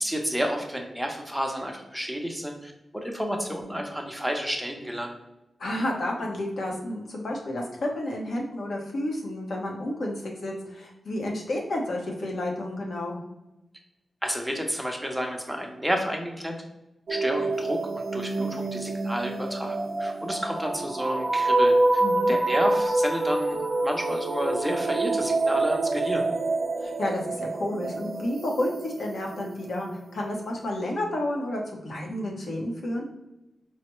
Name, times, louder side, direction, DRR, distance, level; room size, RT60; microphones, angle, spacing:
voice 1, 0.0-5.2 14.2-16.6 17.1-22.0 22.3-26.3, equal, ahead, 1 dB, 0.7 m, -31 dB
voice 2, 5.6-13.2 22.0-22.4 26.8-33.1, left 1 dB, 75° left, 0 dB, 0.8 m, -31 dB
sound 1, 17.1-29.8, right 2 dB, 60° right, 0.5 m, -26 dB
4.7 x 2.1 x 3.0 m, 0.95 s
wide cardioid pair, 95°, 0 cm